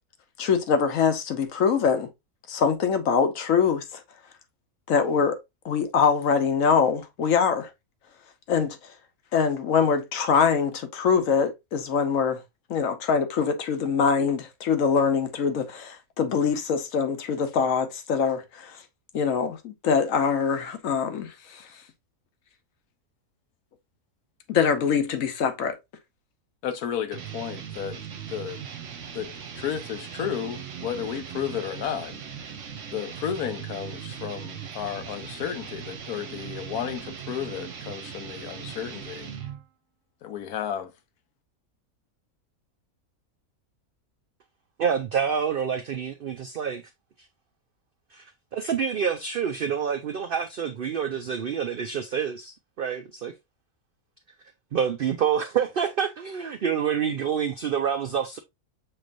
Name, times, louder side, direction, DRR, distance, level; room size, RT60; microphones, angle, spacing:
voice 1, 0.4-2.1 2.5-4.0 4.9-5.4 5.6-7.7 8.5-8.8 9.3-12.4 12.7-18.8 19.1-21.6 24.5-25.8, left 6 dB, 65° left, 1.2 m, -23 dB
voice 2, 26.6-28.0 28.3-28.6 29.1-29.3 29.5-32.1 32.9-39.3 40.2-40.9, left 9 dB, 85° left, 1.3 m, -32 dB
sound 1, 27.1-39.6, right 8 dB, 60° right, 1.1 m, -39 dB
voice 3, 44.8-46.8 48.1-53.3 54.7-58.4, right 7 dB, 75° right, 0.5 m, -27 dB
6.6 x 3.2 x 2.5 m
omnidirectional pair, 1.5 m